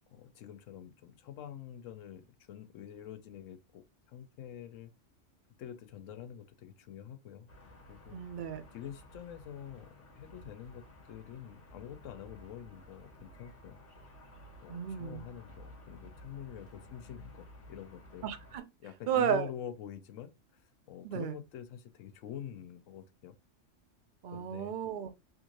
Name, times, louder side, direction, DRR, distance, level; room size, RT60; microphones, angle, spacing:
voice 1, 0.1-4.9 5.6-7.5 7.9-8.2 8.7-13.8 14.6-18.3 18.8-23.3 24.3-24.7, left 10 dB, 85° left, 1.0 m, -46 dB
sound 1, 7.5-18.6, left 1 dB, 45° left, 1.4 m, -54 dB
voice 2, 8.1-8.6 14.7-15.2 18.2-18.7 19.1-19.5 21.0-21.4 24.2-25.1, right 8 dB, 60° right, 0.5 m, -33 dB
3.5 x 2.5 x 2.9 m
omnidirectional pair, 1.3 m